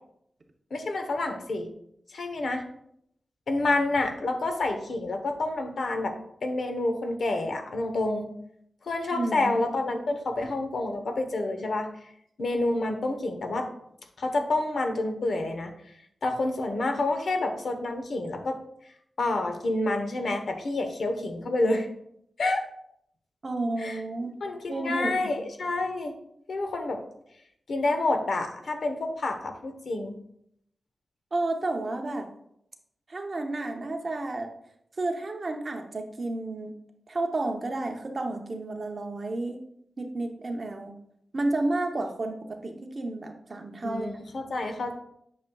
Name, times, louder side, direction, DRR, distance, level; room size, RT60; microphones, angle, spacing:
voice 1, 0.7-1.7 2.1-2.6 3.5-6.1 6.4-8.3 8.8-11.9 12.4-13.7 14.2-15.7 16.2-18.6 19.2-21.9 22.4-22.6 23.8-24.0 24.4-26.1 26.5-27.0 27.7-30.1 43.8-44.9, left 2 dB, 70° left, 5 dB, 1.0 m, -28 dB
voice 2, 9.1-9.6 23.4-24.3 24.7-25.3 31.3-32.3 33.1-34.5 35.0-36.7 37.1-39.6 40.0-41.0 41.3-44.1, right 2 dB, 40° right, 4 dB, 0.8 m, -31 dB
8.6 x 6.5 x 2.3 m, 0.73 s
wide cardioid pair, 155°, 0 cm